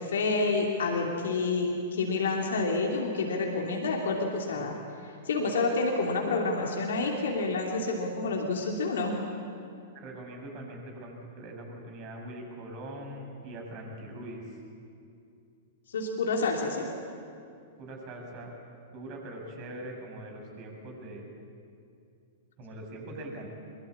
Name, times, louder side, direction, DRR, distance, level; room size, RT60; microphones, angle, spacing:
voice 1, 0.0-4.7 5.0-9.1 15.9-16.9, left 3 dB, 70° left, 0 dB, 3.0 m, -29 dB
voice 2, 10.0-14.6 17.8-18.5 18.9-21.3 22.6-23.5, right 1 dB, 40° right, 1 dB, 7.2 m, -42 dB
24.0 x 22.5 x 8.6 m, 2.5 s
figure-of-eight pair, 105°, 0 cm